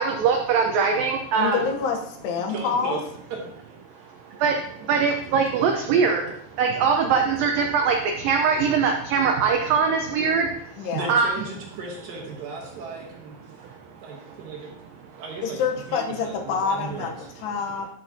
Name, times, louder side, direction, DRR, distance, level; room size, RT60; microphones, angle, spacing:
voice 1, 0.0-1.6 4.0-11.3 13.6-14.3 15.1-15.2, right 5 dB, 85° right, 3 dB, 2.0 m, -23 dB
voice 2, 1.4-3.0 10.8-11.1 15.4-17.9, left 5 dB, 80° left, 3 dB, 2.9 m, -27 dB
voice 3, 2.5-3.0 3.3-3.4 3.6-3.8 10.9-13.4 14.0-14.7 15.2-15.6 15.9-17.3, right 4 dB, 70° right, 0 dB, 2.4 m, -35 dB
12.5 x 5.9 x 2.7 m, 0.72 s
omnidirectional pair, 4.9 m